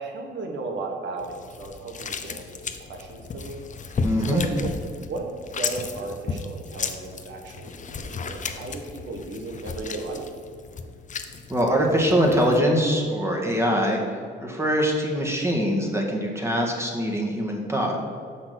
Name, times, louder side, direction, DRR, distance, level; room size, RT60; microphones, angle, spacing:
voice 1, 0.0-4.0 4.3-5.3 5.5-10.3, right 3 dB, 65° right, 2 dB, 1.5 m, -35 dB
sound 1, 1.2-12.6, left 4 dB, 40° left, 0.7 m, -34 dB
voice 2, 4.0-4.4 11.5-18.0, equal, 15° right, 0 dB, 1.7 m, -23 dB
6.4 x 5.8 x 6.1 m, 2.1 s
cardioid pair, 90°, 20 cm